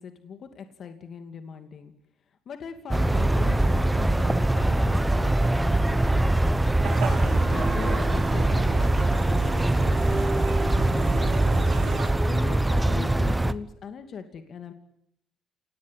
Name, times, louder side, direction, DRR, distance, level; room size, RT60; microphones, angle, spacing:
voice 1, 0.0-1.9 2.5-7.0 7.5-11.6 12.0-14.7, left 6 dB, 50° left, 8 dB, 2.6 m, -40 dB
sound 1, 2.9-13.5, right 1 dB, 10° right, 1.1 m, -23 dB
sound 2, 6.8-12.1, right 6 dB, 65° right, 7.1 m, -34 dB
27.5 x 19.0 x 9.4 m, 0.74 s
cardioid pair, 120°, 0 cm